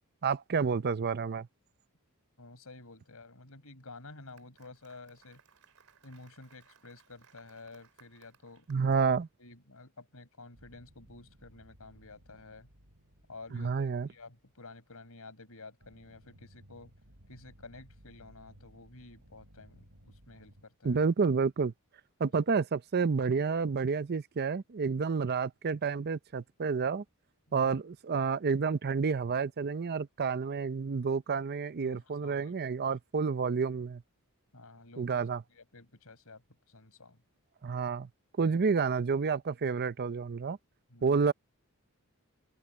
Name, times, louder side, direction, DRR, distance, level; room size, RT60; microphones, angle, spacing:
voice 1, 0.2-1.5 8.7-9.3 13.5-14.1 20.8-21.7 22.2-27.0 27.5-34.0 35.0-35.4 37.6-38.1 38.4-40.6 41.0-41.3, right 5 dB, 45° right, 0.5 m, -29 dB
voice 2, 2.4-5.4 6.0-8.7 9.4-12.7 13.3-16.9 17.3-21.0 22.2-22.4 27.5-27.8 31.8-32.8 34.5-35.2 35.5-37.2 38.4-38.6 40.9-41.2, left 3 dB, 75° left, 5.4 m, -51 dB
Applause, 4.0-9.1, right 6 dB, 70° right, 4.0 m, -64 dB
sound 1, 10.5-14.8 15.8-20.6, equal, 85° right, 6.6 m, -59 dB
open air
head